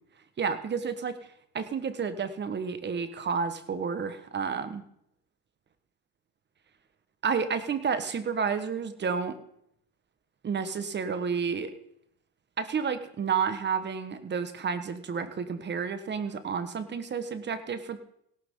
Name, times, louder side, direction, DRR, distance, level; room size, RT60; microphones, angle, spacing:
voice 1, 0.4-1.2 1.5-4.8 7.2-9.4 10.4-11.7 12.6-18.0, right 6 dB, 35° right, 11 dB, 1.5 m, -30 dB
17.5 x 12.0 x 3.9 m, 0.72 s
supercardioid pair, 100°, 31 cm